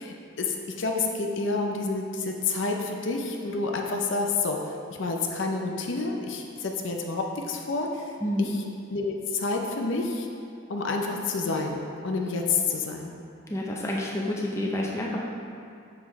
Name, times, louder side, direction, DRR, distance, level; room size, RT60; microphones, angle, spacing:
voice 1, 0.0-4.6 5.0-8.1 8.4-8.5 8.9-10.3 10.7-13.1, left 3 dB, 65° left, 2 dB, 0.6 m, -29 dB
voice 2, 13.5-15.2, left 1 dB, 15° left, -3 dB, 0.5 m, -28 dB
6.9 x 4.8 x 3.1 m, 2.4 s
head